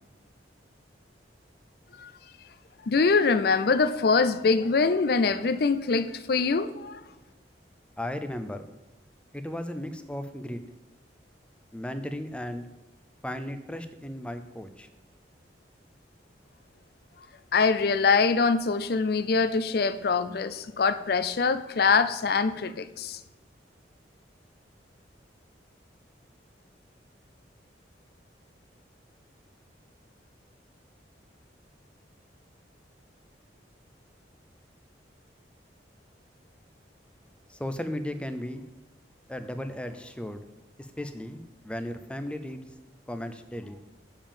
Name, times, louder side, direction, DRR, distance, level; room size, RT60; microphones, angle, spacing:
voice 1, 2.9-7.0 17.5-23.2, left 4 dB, 55° left, 13 dB, 0.5 m, -24 dB
voice 2, 8.0-8.7 9.3-10.6 11.7-12.6 13.2-14.9 37.5-38.6 39.3-40.4 40.8-42.6 43.1-43.8, left 1 dB, 5° left, 9 dB, 0.5 m, -35 dB
7.1 x 5.2 x 7.2 m, 1.0 s
head